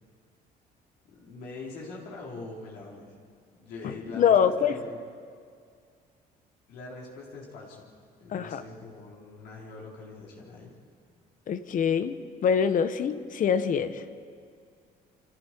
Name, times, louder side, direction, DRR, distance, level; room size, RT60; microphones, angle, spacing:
voice 1, 1.1-3.1 3.6-5.0 6.7-7.9 8.2-10.7, left 3 dB, 80° left, -4 dB, 4.0 m, -43 dB
voice 2, 3.8-4.8 8.3-8.6 11.5-12.2 12.4-14.0, left 7 dB, 50° left, 11 dB, 1.1 m, -24 dB
28.5 x 26.0 x 4.6 m, 2.2 s
cardioid pair, 110°, 17 cm